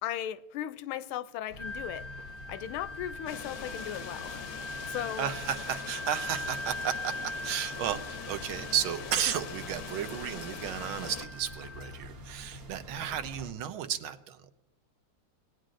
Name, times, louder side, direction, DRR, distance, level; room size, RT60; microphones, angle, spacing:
voice 1, 0.0-2.1 2.5-5.3, left 11 dB, 85° left, 1.4 m, -37 dB
sound 1, 1.5-13.5, left 1 dB, 50° right, 0.7 m, -47 dB
Wind instrument woodwind instrument, 1.6-11.9, left 1 dB, 50° left, 0.4 m, -41 dB
sound 2, 3.3-11.3, left 8 dB, 70° left, 0.9 m, -43 dB
voice 2, 5.2-14.5, right 9 dB, 80° right, 1.6 m, -33 dB
19.5 x 9.2 x 2.5 m
omnidirectional pair, 2.3 m